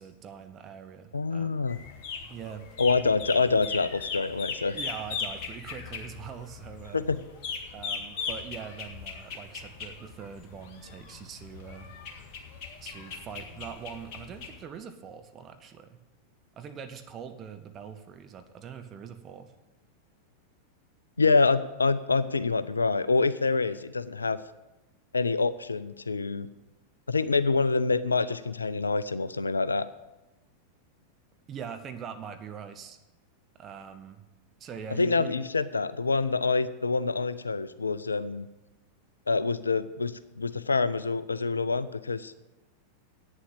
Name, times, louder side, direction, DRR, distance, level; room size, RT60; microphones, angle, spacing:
voice 1, 0.0-1.7 2.3-2.7 4.7-7.1 7.7-11.9 12.8-16.0 16.6-19.5 31.5-33.0 33.5-34.2 34.6-35.4, right 7 dB, 30° right, 8 dB, 1.1 m, -42 dB
voice 2, 1.1-1.8 2.8-4.8 6.9-7.2 21.2-24.4 25.1-26.5 27.1-29.9 34.9-38.5 39.3-42.4, left 4 dB, 75° left, 16 dB, 0.5 m, -26 dB
sound 1, 1.7-14.6, left 5 dB, 45° left, 1.8 m, -39 dB
9.0 x 7.1 x 8.7 m, 0.99 s
figure-of-eight pair, 90°, 0 cm